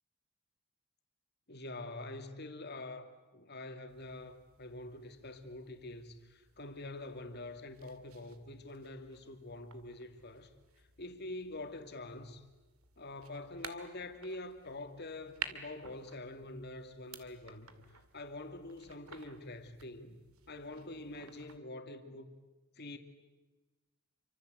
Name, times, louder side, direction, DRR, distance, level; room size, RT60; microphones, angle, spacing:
voice 1, 1.5-10.5 11.0-12.4 13.0-20.2 20.5-22.3 22.8-23.0, left 2 dB, 50° left, 2.6 m, -46 dB
sound 1, 3.9-21.6, right 7 dB, 80° right, 2.4 m, -53 dB
29.0 x 25.0 x 8.1 m
head